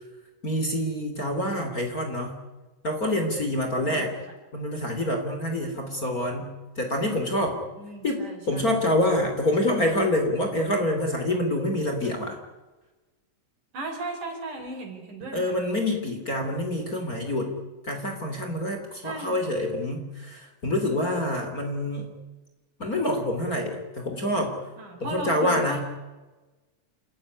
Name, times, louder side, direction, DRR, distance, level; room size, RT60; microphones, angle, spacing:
voice 1, 0.4-2.4 2.8-4.1 4.5-6.5 6.8-7.6 8.0-8.2 8.5-12.4 15.3-17.5 17.8-22.1 22.8-24.5 25.0-25.8, left 1 dB, 25° left, 4 dB, 3.4 m, -26 dB
voice 2, 7.8-8.7 13.7-15.8 19.0-19.5 24.8-25.8, right 2 dB, 65° right, 4 dB, 6.2 m, -36 dB
28.5 x 16.5 x 9.8 m, 1.2 s
omnidirectional pair, 3.9 m